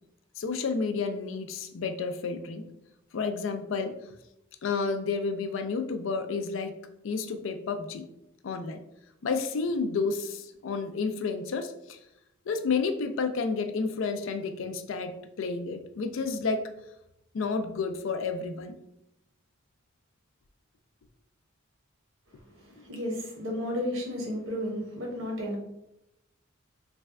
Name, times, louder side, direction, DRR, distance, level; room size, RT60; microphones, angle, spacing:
voice 1, 0.4-2.7 3.1-4.0 4.6-6.8 7.0-8.1 8.4-8.8 9.2-12.0 12.5-16.7 17.3-18.7, left 4 dB, 70° left, 7 dB, 0.4 m, -31 dB
voice 2, 22.6-25.6, left 1 dB, 80° right, 0 dB, 1.0 m, -33 dB
3.3 x 2.2 x 3.4 m, 0.83 s
head